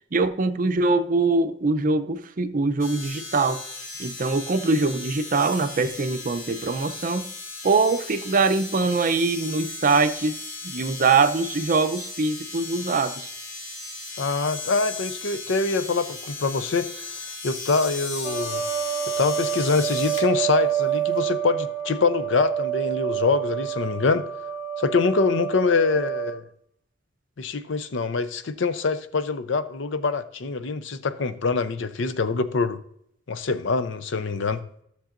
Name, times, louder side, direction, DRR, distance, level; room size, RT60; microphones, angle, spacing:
voice 1, 0.1-3.6 4.0-7.3 7.6-10.4 10.6-13.3, right 3 dB, 45° right, 0.5 m, -23 dB
sound 1, 2.8-20.3 21.2-21.3, left 3 dB, 85° left, 2.2 m, -36 dB
voice 2, 14.2-18.6 19.2-24.3 24.8-26.4 27.4-32.8 33.3-34.6, left 4 dB, 65° left, 0.6 m, -24 dB
sound 2, 18.2-26.3, right 10 dB, 20° right, 1.3 m, -28 dB
13.0 x 6.7 x 2.5 m
head